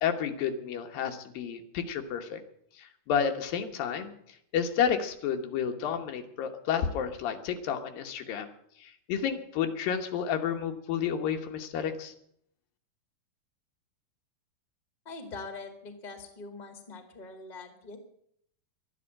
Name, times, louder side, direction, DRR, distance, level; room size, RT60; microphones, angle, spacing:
voice 1, 0.0-2.4 2.8-4.1 4.5-8.5 8.8-12.1, left 8 dB, 85° left, 6 dB, 3.0 m, -31 dB
voice 2, 15.0-18.0, left 3 dB, 15° left, 5 dB, 1.5 m, -43 dB
12.5 x 10.0 x 8.6 m, 0.70 s
omnidirectional pair, 3.9 m